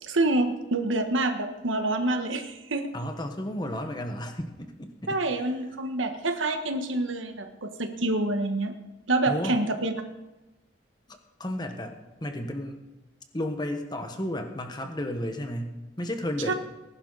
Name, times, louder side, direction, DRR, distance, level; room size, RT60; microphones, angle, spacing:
voice 1, 0.0-2.9 5.1-8.7 9.1-9.9 16.5-16.6, right 2 dB, 90° right, 6 dB, 1.5 m, -27 dB
voice 2, 2.9-5.5 9.2-9.6 11.4-12.8 13.3-16.5, left 1 dB, 20° left, 5 dB, 1.4 m, -33 dB
20.0 x 11.5 x 4.1 m, 1.1 s
head